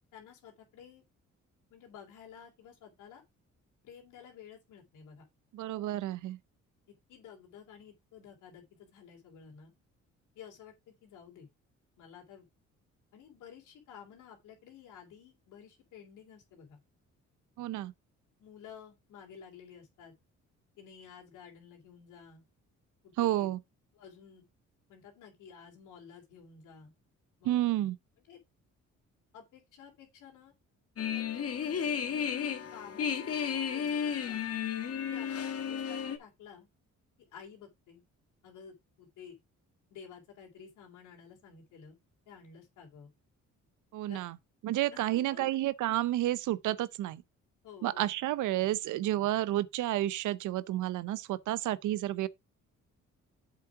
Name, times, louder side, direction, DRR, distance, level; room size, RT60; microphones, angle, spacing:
voice 1, 0.1-1.0 1.7-3.2 3.8-5.3 7.1-9.7 10.3-11.5 12.0-12.5 13.1-16.8 18.4-20.1 20.8-22.4 23.0-23.5 23.9-24.4 24.9-26.9 27.4-27.6 28.3-28.4 29.3-30.5 31.1-31.5 32.1-33.0 33.5-34.4 35.1-36.7 37.3-38.0 38.4-39.4 39.9-42.0 42.3-43.1 44.1-44.2 44.9-45.5 47.6-48.0, left 7 dB, 85° left, 3.2 m, -52 dB
voice 2, 5.5-6.4 17.6-17.9 23.2-23.6 27.4-28.0 43.9-44.4 44.6-47.2 47.8-52.3, right 14 dB, 80° right, 0.7 m, -31 dB
sound 1, 31.0-36.2, left 7 dB, 50° left, 1.8 m, -33 dB
7.7 x 5.5 x 4.7 m
cardioid pair, 90°, 30 cm